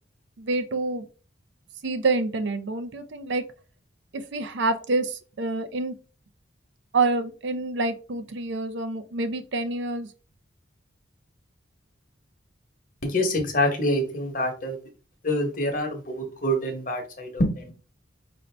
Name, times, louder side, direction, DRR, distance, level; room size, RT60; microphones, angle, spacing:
voice 1, 0.4-1.1 1.8-3.4 4.1-6.0 6.9-10.1, right 3 dB, 65° right, 10 dB, 0.5 m, -27 dB
voice 2, 13.0-14.8 15.2-17.7, left 1 dB, 45° left, 4 dB, 1.0 m, -26 dB
5.2 x 2.6 x 3.3 m, 0.35 s
head